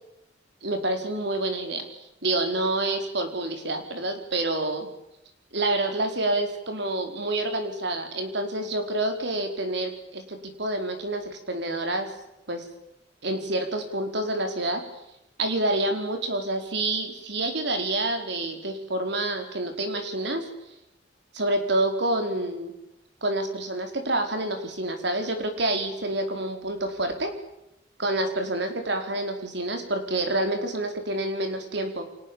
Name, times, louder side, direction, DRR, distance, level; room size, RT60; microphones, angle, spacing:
voice 1, 0.6-1.8 2.2-4.9 5.5-12.1 12.5-12.6 13.2-14.8 15.4-20.5 21.3-22.7 23.2-27.3 28.0-32.1, right 2 dB, 65° right, 5 dB, 4.7 m, -28 dB
30.0 x 25.0 x 7.3 m, 0.87 s
head